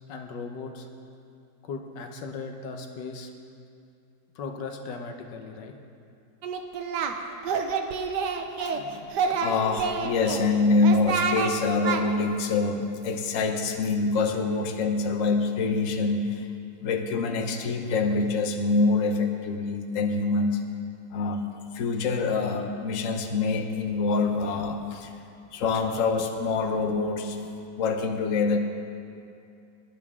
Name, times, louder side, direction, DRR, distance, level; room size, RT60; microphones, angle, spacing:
voice 1, 0.1-0.9 1.6-3.3 4.3-5.7, left 4 dB, 85° left, 4 dB, 1.6 m, -37 dB
Singing, 6.4-7.1 7.4-8.8 9.1-10.4 10.8-11.5 11.8-12.0, right 6 dB, 85° right, 1.4 m, -27 dB
voice 2, 8.6-16.5 16.8-20.6 21.1-25.1 25.5-27.5 27.8-28.6, left 3 dB, 55° left, 4 dB, 1.2 m, -26 dB
20.5 x 10.5 x 3.7 m, 2.5 s
omnidirectional pair, 1.8 m